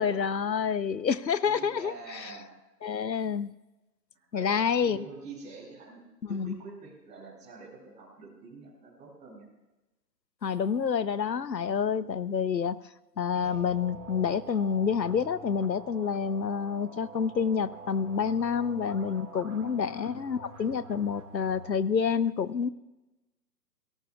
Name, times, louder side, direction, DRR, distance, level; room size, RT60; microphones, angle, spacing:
voice 1, 0.0-2.3 2.8-3.5 4.3-5.0 6.3-6.6 10.4-12.8 13.2-22.7, left 6 dB, 80° left, 16 dB, 0.9 m, -28 dB
voice 2, 1.4-2.5 4.1-6.0 6.3-9.5 13.3-13.6, right 4 dB, 15° right, -5 dB, 7.2 m, -46 dB
sound 1, 13.4-21.8, right 3 dB, 60° right, 3.7 m, -47 dB
28.0 x 17.5 x 2.4 m, 1.0 s
figure-of-eight pair, 140°, 50 cm